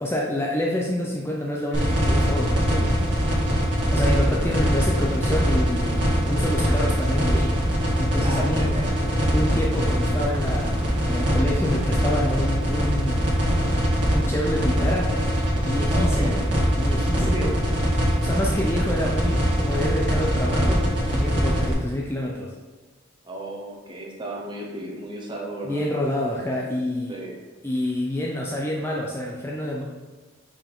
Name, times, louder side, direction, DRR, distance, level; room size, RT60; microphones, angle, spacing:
voice 1, 0.0-2.9 3.9-7.6 7.9-8.7 9.3-10.8 11.1-13.2 14.1-15.1 15.6-16.4 16.8-17.5 18.0-22.5 25.6-27.2 27.6-29.8, left 1 dB, 10° left, -2 dB, 0.5 m, -27 dB
sound 1, 1.7-21.7, equal, 60° right, 1.8 m, -22 dB
voice 2, 8.2-9.2 15.9-16.4 17.2-17.5 23.2-25.8 27.1-27.4, right 1 dB, 25° right, -1 dB, 1.0 m, -34 dB
5.7 x 4.5 x 3.6 m, 1.2 s
head